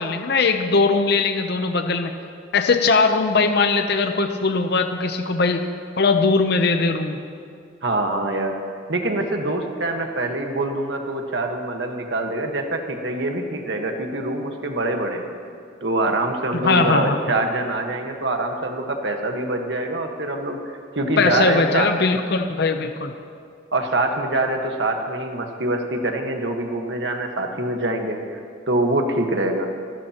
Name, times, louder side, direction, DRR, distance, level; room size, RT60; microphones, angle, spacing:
voice 1, 0.0-2.1 2.5-5.6 6.0-7.2 16.5-17.2 21.2-23.1, left 4 dB, 60° left, 6 dB, 0.7 m, -20 dB
voice 2, 7.8-8.6 8.9-15.3 15.8-21.9 23.7-28.4 28.7-29.7, right 2 dB, 65° right, 3 dB, 1.4 m, -24 dB
29.5 x 13.0 x 3.0 m, 2.3 s
head